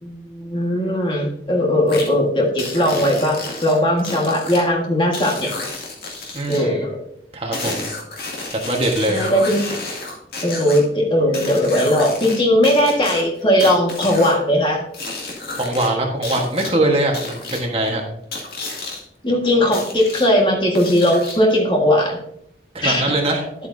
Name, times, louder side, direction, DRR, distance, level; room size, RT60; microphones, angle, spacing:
voice 1, 0.0-5.5 6.5-7.0 9.1-9.7 10.4-14.8 19.2-22.2 22.8-23.0, left 1 dB, 25° left, -1 dB, 1.6 m, -18 dB
sound 1, 1.9-2.1 2.6-4.6 5.1-6.6 7.5-10.8 11.3-12.4 12.6-14.4 14.9-15.9 16.2-16.7 17.1-17.6 18.3-19.0 19.7-20.3 20.7-21.5, left 3 dB, 60° left, 2.3 m, -31 dB
voice 2, 6.3-6.8 7.3-7.8 8.5-9.2 15.5-18.0 22.7-23.4, right 1 dB, 35° right, 1 dB, 1.4 m, -21 dB
11.0 x 8.3 x 2.7 m, 0.71 s
head